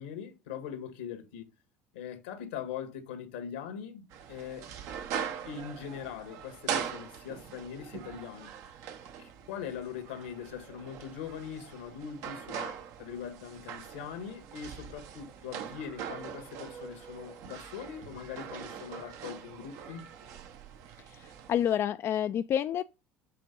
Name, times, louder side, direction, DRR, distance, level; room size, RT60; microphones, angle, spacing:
voice 1, 0.0-1.5 1.9-4.7 5.5-8.8 9.2-20.0, left 8 dB, 85° left, 1.7 m, -41 dB
sound 1, 4.1-21.7, right 8 dB, 65° right, 1.0 m, -42 dB
voice 2, 21.1-22.8, left 10 dB, 45° left, 0.4 m, -29 dB
7.7 x 3.7 x 5.3 m
hypercardioid pair, 80°, 6 cm